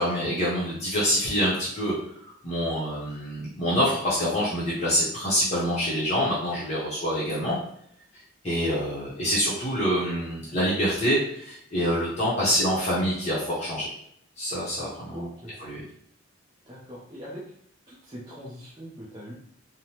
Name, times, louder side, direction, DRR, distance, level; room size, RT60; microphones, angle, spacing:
voice 1, 0.0-1.9 2.2-7.6 8.4-13.9 14.4-15.3 15.6-15.8, equal, 30° left, -9 dB, 0.7 m, -26 dB
voice 2, 15.1-15.5 16.7-17.4 17.9-19.3, equal, 20° right, -8 dB, 0.5 m, -41 dB
3.1 x 2.0 x 2.8 m, 0.69 s
head